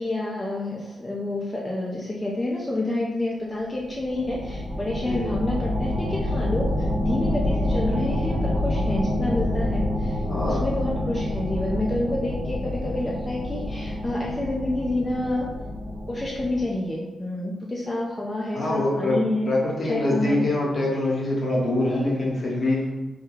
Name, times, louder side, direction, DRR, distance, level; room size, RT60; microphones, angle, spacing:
voice 1, 0.0-10.2 10.4-15.5 16.1-19.5 19.9-20.4, left 1 dB, 25° left, -4 dB, 0.5 m, -28 dB
sound 1, 3.8-16.6, left 1 dB, 70° right, 0.8 m, -27 dB
voice 2, 10.3-10.6 18.5-19.2 19.5-22.9, left 2 dB, 55° left, -4 dB, 0.9 m, -24 dB
2.3 x 2.2 x 3.1 m, 1.1 s
supercardioid pair, 45°, 0 cm